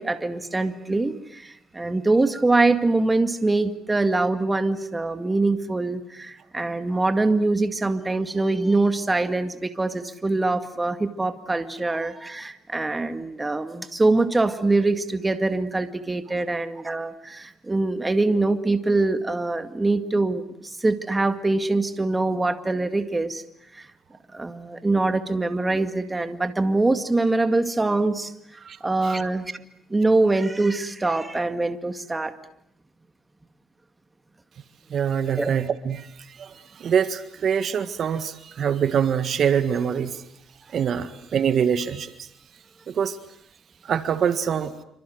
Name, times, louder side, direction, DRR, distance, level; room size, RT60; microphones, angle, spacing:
voice 1, 0.0-23.4 23.7-23.9 24.3-28.3 28.8-29.5 29.9-32.4 35.4-35.5, right 2 dB, 15° right, 9 dB, 2.1 m, -23 dB
voice 2, 28.6-29.2 34.9-40.2 40.7-42.3 42.9-43.2 43.8-44.7, right 8 dB, 55° right, 11 dB, 1.7 m, -25 dB
28.0 x 25.5 x 7.9 m, 0.76 s
cardioid pair, 100°, 0 cm